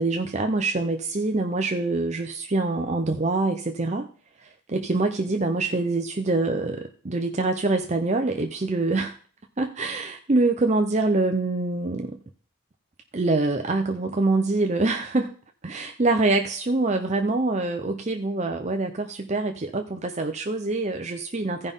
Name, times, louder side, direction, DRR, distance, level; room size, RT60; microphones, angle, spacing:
voice 1, 0.0-4.1 4.7-9.1 9.6-12.2 13.1-15.3 15.6-21.7, right 2 dB, 35° right, 4 dB, 0.6 m, -25 dB
15.0 x 5.4 x 3.6 m, 0.42 s
head